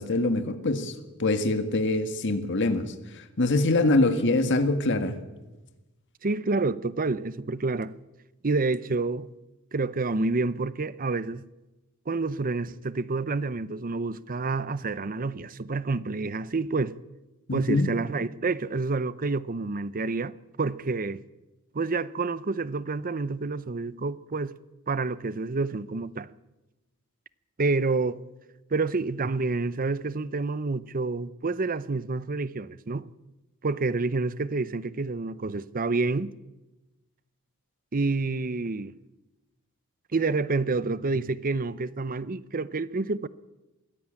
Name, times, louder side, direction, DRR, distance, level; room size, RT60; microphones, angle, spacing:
voice 1, 0.0-5.2 17.5-17.9, left 2 dB, 55° left, 1.7 m, -24 dB
voice 2, 6.2-7.9 8.4-9.3 9.7-11.4 12.1-16.9 17.5-21.2 21.7-24.5 24.9-26.3 27.6-28.2 28.7-33.1 33.6-36.3 37.9-38.9 40.1-43.3, right 3 dB, 40° right, 0.7 m, -28 dB
23.0 x 16.5 x 8.8 m
head